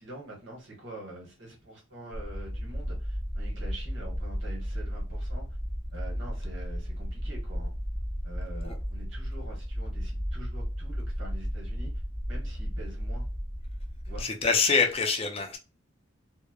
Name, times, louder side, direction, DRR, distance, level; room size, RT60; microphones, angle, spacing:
voice 1, 0.0-5.5 5.9-7.7 8.2-12.0 12.3-13.3 14.1-14.2, right 1 dB, 65° right, 1.2 m, -45 dB
sound 1, 2.1-14.2, equal, 5° right, 0.9 m, -34 dB
voice 2, 14.2-15.6, left 5 dB, 30° left, 0.4 m, -25 dB
2.9 x 2.1 x 2.3 m
head